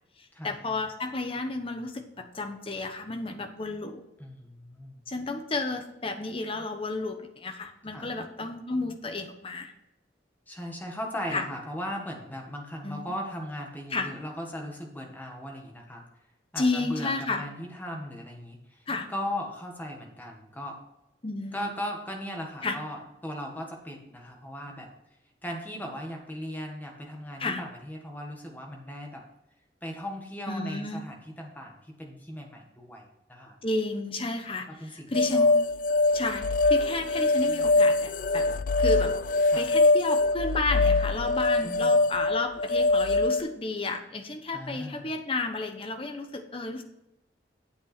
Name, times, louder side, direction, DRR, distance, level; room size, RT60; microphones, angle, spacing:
voice 1, 0.4-4.0 5.1-9.7 11.3-11.5 12.8-13.1 13.9-14.1 16.6-17.4 18.9-19.1 21.2-21.7 22.6-22.8 27.4-27.6 30.5-31.0 33.6-35.6 36.1-38.5 38.8-39.2 39.6-46.8, left 2 dB, 30° left, 6 dB, 1.0 m, -32 dB
voice 2, 4.2-5.0 7.9-8.1 10.5-16.0 16.5-18.8 19.1-20.8 21.5-24.9 25.4-29.2 29.8-33.6 34.8-35.5 39.5-39.6 41.6-41.9 44.5-45.1, equal, 10° left, 1 dB, 1.6 m, -38 dB
sound 1, 35.1-43.4, left 2 dB, 45° left, 0.3 m, -23 dB
8.8 x 7.4 x 4.4 m, 0.91 s
head